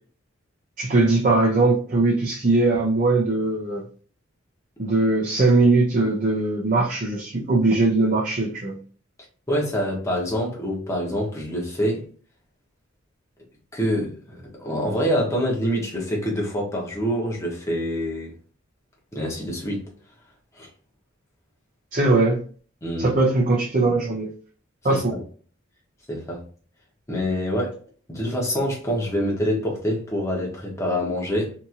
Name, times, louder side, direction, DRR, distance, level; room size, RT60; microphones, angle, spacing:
voice 1, 0.8-3.9 4.8-8.8 21.9-22.4 23.0-24.3 24.8-25.1, right 2 dB, 40° right, 0.6 m, -20 dB
voice 2, 9.5-12.0 13.7-18.3 19.1-19.8 20.6-20.7 22.8-23.1 24.9-25.2 26.1-26.4 27.1-27.7 28.1-31.5, equal, 15° left, 0.9 m, -26 dB
2.8 x 2.6 x 2.4 m
head